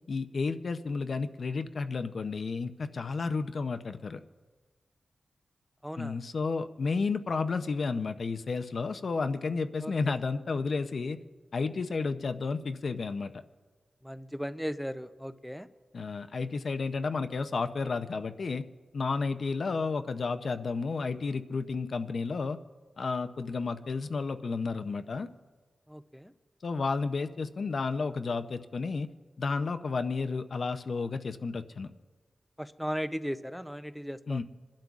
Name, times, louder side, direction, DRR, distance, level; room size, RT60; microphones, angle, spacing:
voice 1, 0.1-4.2 6.0-11.2 11.5-13.3 15.9-18.6 18.9-22.6 23.0-25.3 26.6-29.1 29.4-31.9 34.3-34.4, left 4 dB, 60° left, 9 dB, 0.6 m, -32 dB
voice 2, 5.8-6.2 9.8-10.2 14.0-15.7 25.9-26.3 32.6-34.4, equal, ahead, 11 dB, 0.4 m, -37 dB
27.5 x 11.5 x 2.4 m, 1.4 s
wide cardioid pair, 105°, 0 cm